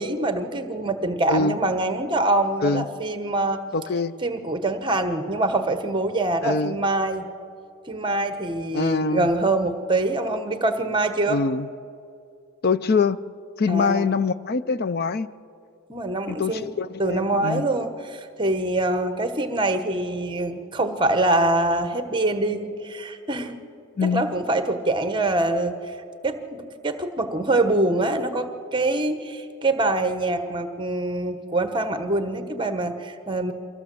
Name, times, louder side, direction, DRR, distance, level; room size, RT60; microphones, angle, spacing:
voice 1, 0.0-3.6 4.2-7.3 7.9-11.4 13.7-14.1 15.9-16.7 17.0-23.6 24.1-26.0 26.2-33.5, right 2 dB, 20° right, 1.1 m, -24 dB
voice 2, 3.7-4.1 6.4-6.8 8.7-9.3 11.3-11.7 12.6-13.2 13.6-15.3 16.3-17.6 24.0-24.2, left 4 dB, 45° left, 0.5 m, -24 dB
24.5 x 16.0 x 7.7 m
head